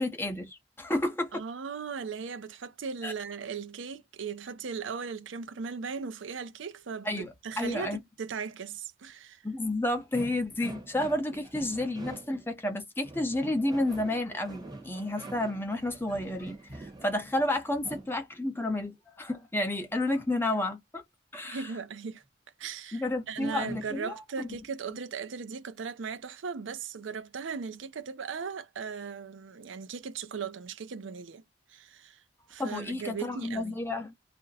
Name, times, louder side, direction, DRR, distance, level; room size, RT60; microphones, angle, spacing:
voice 1, 0.0-1.4 3.0-3.1 7.0-7.3 7.6-8.0 9.4-21.0 21.3-21.7 22.9-24.5 32.6-34.1, left 1 dB, 10° left, 0.6 m, -31 dB
voice 2, 1.3-9.4 21.4-22.2 22.6-31.4 31.7-32.2 32.5-33.8, right 5 dB, 80° right, 0.5 m, -38 dB
sound 1, 10.1-12.5 13.0-18.1 23.4-24.0, right 2 dB, 20° right, 0.9 m, -45 dB
2.5 x 2.1 x 4.0 m
head